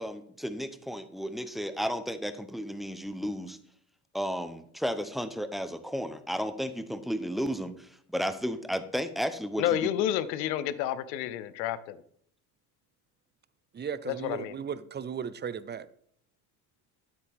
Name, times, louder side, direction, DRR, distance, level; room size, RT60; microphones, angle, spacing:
voice 1, 0.0-3.6 4.1-9.9, equal, ahead, 0.8 m, -33 dB
voice 2, 9.6-12.0 14.1-14.6, left 11 dB, 90° left, 0.8 m, -30 dB
voice 3, 13.7-15.9, right 7 dB, 20° right, 0.5 m, -36 dB
9.3 x 8.4 x 3.6 m
supercardioid pair, 80°, 49 cm